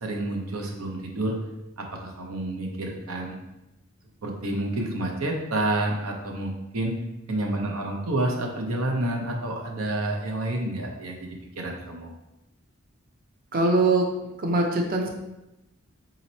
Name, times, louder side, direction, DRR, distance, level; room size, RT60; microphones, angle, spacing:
voice 1, 0.0-1.4 1.8-3.4 4.2-6.9 7.3-12.1, right 1 dB, 90° right, 1 dB, 0.8 m, -29 dB
voice 2, 13.5-14.1 14.4-15.1, right 2 dB, 45° right, 2 dB, 0.6 m, -22 dB
3.9 x 2.9 x 4.2 m, 0.94 s
head